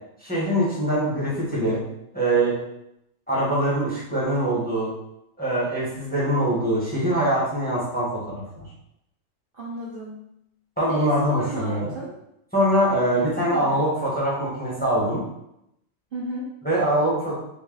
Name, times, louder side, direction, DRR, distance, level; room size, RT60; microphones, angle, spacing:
voice 1, 0.2-1.8 2.1-2.6 3.3-4.9 5.4-8.2 8.6-8.7 10.8-11.9 12.5-15.2 16.6-17.3, right 1 dB, 5° left, -7 dB, 1.1 m, -23 dB
voice 2, 9.5-10.2 10.9-12.1 13.2-13.8 16.1-16.5, right 1 dB, 45° right, -7 dB, 0.8 m, -34 dB
3.2 x 2.7 x 3.8 m, 0.82 s
omnidirectional pair, 1.6 m